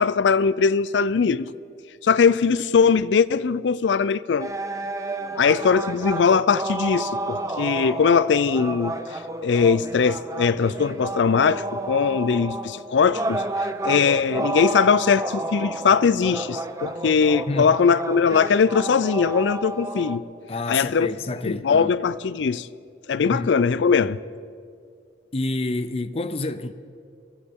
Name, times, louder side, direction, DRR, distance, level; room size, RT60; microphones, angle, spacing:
voice 1, 0.0-1.5 2.0-4.5 5.4-9.0 9.4-13.4 13.8-20.2 20.7-21.1 21.5-22.7 23.1-24.2, left 5 dB, 85° left, 0.4 m, -20 dB
sound 1, 4.4-20.2, right 2 dB, 20° right, 0.7 m, -31 dB
voice 2, 17.5-17.8 20.5-21.9 23.2-23.5 25.3-26.7, left 2 dB, 35° left, 0.5 m, -28 dB
23.0 x 16.0 x 3.7 m
head